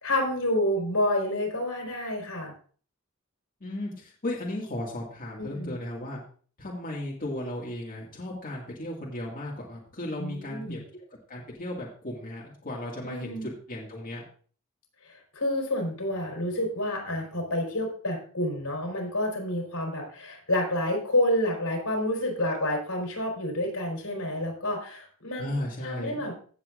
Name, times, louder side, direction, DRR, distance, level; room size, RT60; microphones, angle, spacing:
voice 1, 0.0-2.5 5.4-5.8 10.2-10.9 13.0-13.5 15.1-25.5 25.8-26.4, left 1 dB, 80° left, 1 dB, 4.2 m, -29 dB
voice 2, 3.6-6.2 6.6-10.8 11.3-14.2 25.4-26.2, left 1 dB, 40° left, -4 dB, 2.1 m, -35 dB
16.5 x 7.1 x 2.5 m, 0.43 s
head